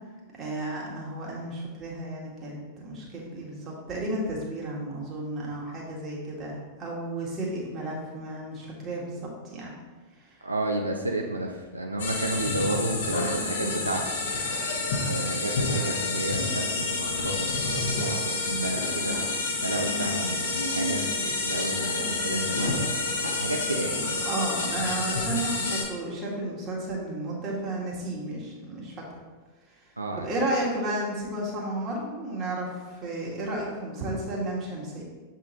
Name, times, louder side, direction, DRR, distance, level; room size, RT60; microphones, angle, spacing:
voice 1, 0.3-9.7 24.2-28.9 30.1-35.0, right 1 dB, 30° right, -4 dB, 1.9 m, -33 dB
voice 2, 10.4-14.2 15.1-19.2 19.6-21.0 21.4-24.1 30.0-30.3, right 1 dB, 85° right, 1 dB, 0.5 m, -32 dB
sound 1, 12.0-25.8, left 2 dB, 60° left, 1.1 m, -28 dB
7.4 x 3.7 x 4.2 m, 1.3 s
figure-of-eight pair, 90°, 0 cm